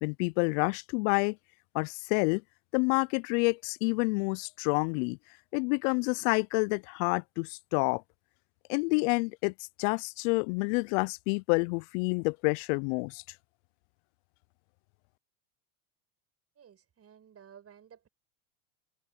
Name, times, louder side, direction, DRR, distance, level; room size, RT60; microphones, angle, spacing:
voice 1, 0.0-1.4 1.7-2.4 2.7-5.2 5.5-8.0 8.7-9.5 9.8-13.2, left 33 dB, 60° left, 0.5 m, -28 dB
voice 2, 16.6-18.1, right 8 dB, 35° right, 7.1 m, -55 dB
hypercardioid pair, 95°, 44 cm